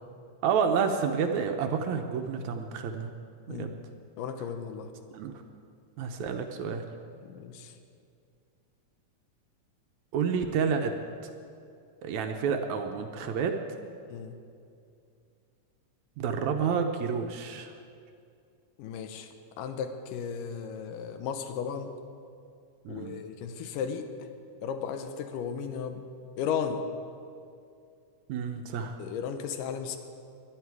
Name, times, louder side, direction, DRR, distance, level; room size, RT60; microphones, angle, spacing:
voice 1, 0.4-3.1 3.5-3.7 5.1-5.3 6.0-6.8 10.1-10.9 12.0-13.5 16.2-17.7 22.9-23.2 28.3-29.0, right 6 dB, 75° right, 5 dB, 2.0 m, -29 dB
voice 2, 4.2-4.9 7.2-7.7 14.1-14.3 18.8-19.3 19.6-21.9 22.9-24.3 24.6-26.0 26.4-26.8 29.0-30.0, left 7 dB, 90° left, 8 dB, 2.4 m, -35 dB
21.0 x 11.0 x 4.8 m, 2.4 s
omnidirectional pair, 3.7 m